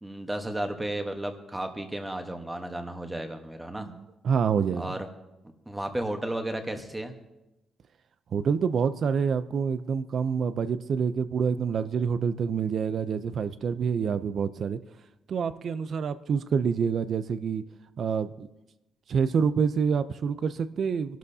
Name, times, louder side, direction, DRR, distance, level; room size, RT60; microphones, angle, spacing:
voice 1, 0.0-3.9 4.8-5.1 5.7-7.1, right 1 dB, 10° right, 6 dB, 1.1 m, -33 dB
voice 2, 3.8-4.9 8.3-14.8 15.3-17.6 18.0-18.5 19.1-21.2, right 6 dB, 45° right, 14 dB, 0.5 m, -27 dB
23.5 x 12.0 x 2.8 m, 0.96 s
cardioid pair, 155°, 0 cm